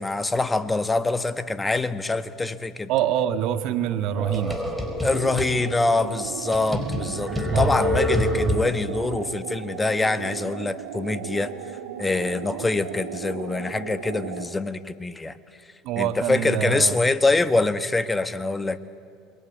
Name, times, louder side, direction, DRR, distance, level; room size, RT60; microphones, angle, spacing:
voice 1, 0.0-2.9 5.0-11.5 12.0-15.4 16.0-18.8, left 3 dB, 15° left, 11 dB, 1.4 m, -24 dB
voice 2, 2.9-4.6 7.5-8.1 15.8-17.0, right 10 dB, 60° right, 9 dB, 1.7 m, -25 dB
sound 1, 4.1-5.5 6.0-6.1 6.5-9.0, left 1 dB, ahead, 4.6 m, -26 dB
sound 2, 5.0-14.6, right 10 dB, 80° right, 1.4 m, -36 dB
28.0 x 22.0 x 8.3 m, 2.4 s
hypercardioid pair, 75°, 0 cm